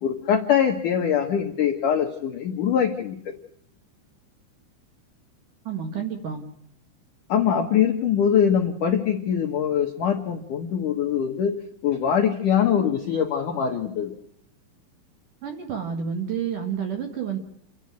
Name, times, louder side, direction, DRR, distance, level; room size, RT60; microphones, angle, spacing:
voice 1, 0.0-3.3 7.3-11.6 11.8-14.1, left 8 dB, 80° left, 3 dB, 1.8 m, -23 dB
voice 2, 5.7-6.4 15.4-17.4, right 7 dB, 55° right, 4 dB, 2.5 m, -29 dB
29.0 x 11.0 x 9.6 m, 0.71 s
omnidirectional pair, 5.8 m